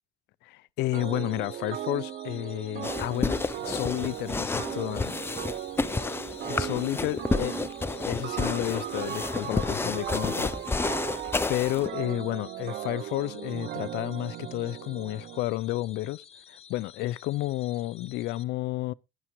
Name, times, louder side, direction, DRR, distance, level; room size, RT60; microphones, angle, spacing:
voice 1, 0.4-5.1 6.5-7.7 8.0-10.5 11.5-18.9, left 16 dB, 80° left, 0.5 m, -31 dB
sound 1, 0.9-18.4, left 7 dB, 35° left, 0.9 m, -52 dB
sound 2, 0.9-15.5, right 13 dB, 60° right, 0.4 m, -38 dB
sound 3, 2.8-11.9, left 3 dB, 15° left, 0.5 m, -30 dB
11.0 x 10.0 x 3.0 m
cardioid pair, 110°, 17 cm